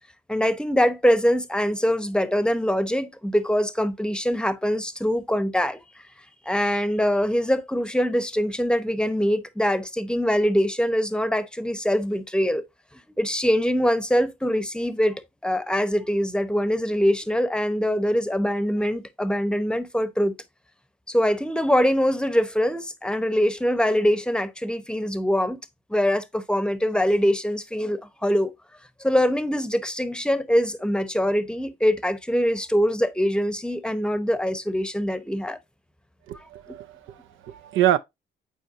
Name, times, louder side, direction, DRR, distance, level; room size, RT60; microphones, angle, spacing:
voice 1, 0.3-5.8 6.5-12.6 13.2-20.4 21.1-25.6 25.9-28.5 29.0-35.6, equal, 5° left, 0.8 m, -23 dB
voice 2, 36.3-38.0, right 12 dB, 85° right, 0.6 m, -25 dB
8.3 x 4.4 x 2.5 m
cardioid pair, 90°, 20 cm